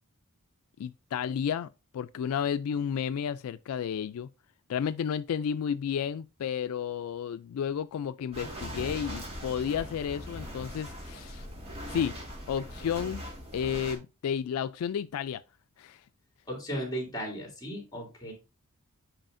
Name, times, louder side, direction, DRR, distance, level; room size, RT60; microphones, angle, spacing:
voice 1, 0.8-4.3 4.7-11.5 11.9-12.1 12.5-13.2 13.5-15.4 15.8-16.0, left 8 dB, 80° left, 0.3 m, -32 dB
sound 1, 8.3-14.0, equal, 30° right, 1.9 m, -40 dB
voice 2, 16.5-18.3, equal, 20° left, 2.8 m, -36 dB
8.9 x 4.8 x 2.6 m
head